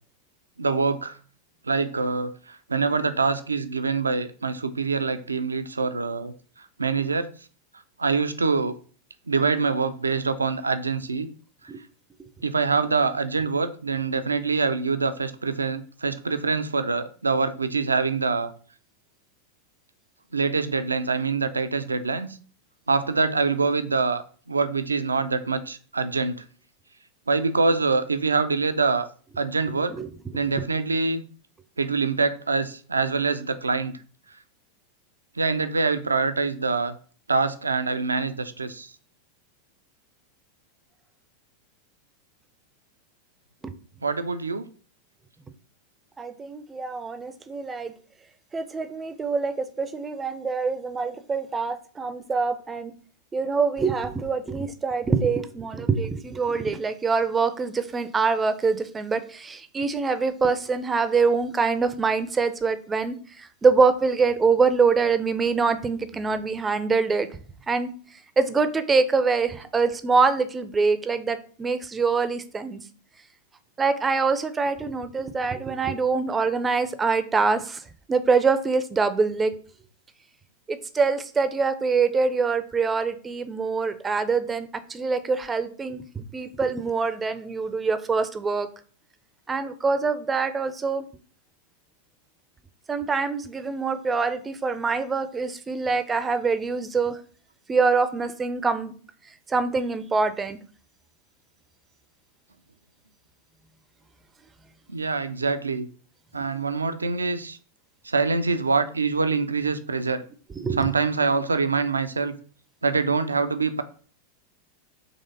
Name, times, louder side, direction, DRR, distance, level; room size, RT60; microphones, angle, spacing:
voice 1, 0.6-1.2 1.7-6.3 6.8-7.3 8.0-8.7 9.3-11.3 12.4-18.5 20.3-22.3 22.9-24.2 24.5-26.4 27.3-29.1 29.4-29.9 30.3-31.2 31.8-34.0 35.4-36.9 37.3-38.9 44.0-44.6 104.9-105.9 106.3-107.6 108.0-110.2 110.7-112.3 112.8-113.8, right 4 dB, 75° right, 0.4 m, -25 dB
voice 2, 46.2-47.9 48.5-52.9 53.3-67.3 67.7-67.9 68.4-72.8 73.8-77.8 78.1-79.5 80.7-88.7 89.5-91.0 92.9-97.2 97.7-98.9 99.5-100.6 110.6-110.9, right 4 dB, 15° right, 0.4 m, -24 dB
4.2 x 3.0 x 3.9 m
figure-of-eight pair, 90°, 0 cm